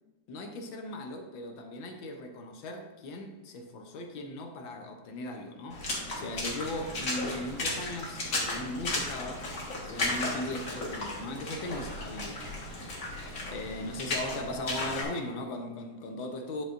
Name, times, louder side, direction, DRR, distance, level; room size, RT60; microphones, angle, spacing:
voice 1, 0.3-12.6 13.5-16.6, left 1 dB, 80° left, 4 dB, 1.7 m, -38 dB
Water / Splash splatter, 5.7-15.0, left 2 dB, 45° left, 1.9 m, -35 dB
10.5 x 6.4 x 2.6 m, 1.2 s
omnidirectional pair, 2.1 m